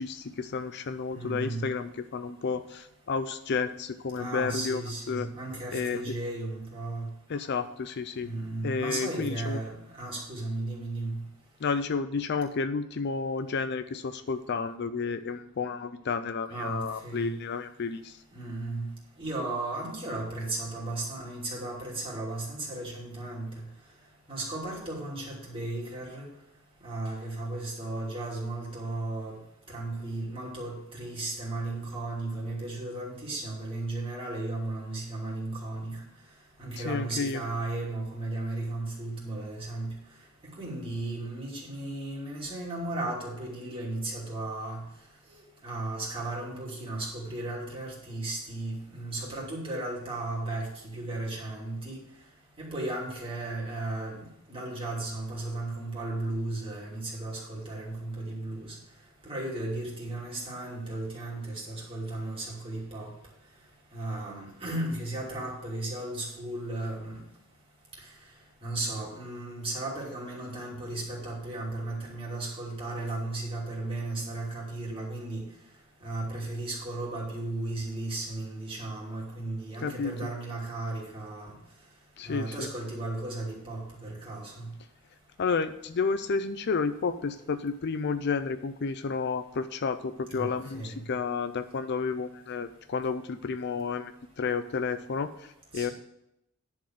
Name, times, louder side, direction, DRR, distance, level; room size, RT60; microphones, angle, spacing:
voice 1, 0.0-4.8 5.1-5.3 5.7-6.1 7.3-8.3 8.6-9.6 11.6-18.2 36.8-37.4 79.8-80.3 82.2-82.7 85.4-95.9, left 5 dB, 50° left, 11 dB, 0.5 m, -31 dB
voice 2, 1.1-1.7 4.1-7.1 8.2-11.2 16.5-17.3 18.3-18.8 19.2-23.5 24.3-26.3 26.8-29.3 29.7-36.0 36.6-39.9 40.6-44.8 45.3-52.0 52.6-58.8 59.2-63.1 63.9-67.2 68.6-75.4 76.0-81.5 82.2-84.7 90.3-91.0 95.7-95.9, right 2 dB, 25° right, -4 dB, 3.0 m, -35 dB
10.5 x 4.6 x 7.5 m, 0.81 s
head